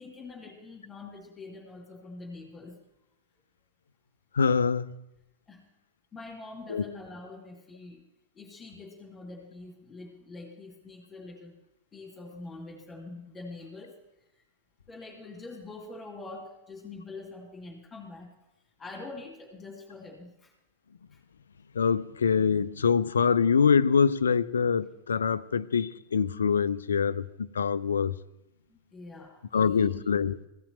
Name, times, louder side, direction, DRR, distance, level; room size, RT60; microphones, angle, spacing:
voice 1, 0.0-2.8 5.5-5.6 6.1-8.0 8.3-11.6 11.9-14.0 14.4-14.5 14.9-18.3 18.8-20.5 21.1-21.2 28.7-30.0, left 3 dB, 15° left, 2.6 m, -44 dB
voice 2, 4.3-4.9 6.7-6.8 21.7-28.2 29.5-30.4, left 6 dB, 70° left, 0.4 m, -24 dB
15.5 x 5.8 x 7.7 m
figure-of-eight pair, 90°, 0 cm